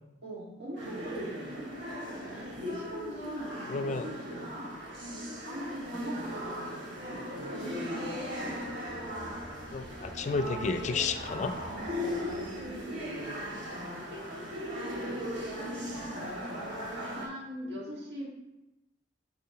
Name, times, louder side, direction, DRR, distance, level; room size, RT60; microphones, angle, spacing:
voice 1, 0.2-1.7 2.3-4.7 5.1-7.0 7.4-8.6 8.9-9.0 11.9-15.1 16.1-16.6 17.1-18.3, equal, 65° right, -4 dB, 2.1 m, -41 dB
sound 1, 0.8-17.3, equal, 80° right, 2.3 m, -38 dB
voice 2, 3.7-4.1 9.7-11.6 16.5-16.9, left 4 dB, 40° left, 8 dB, 0.4 m, -32 dB
sound 2, 7.9-14.3, equal, 30° right, 1.5 m, -52 dB
11.0 x 4.2 x 2.9 m, 0.96 s
head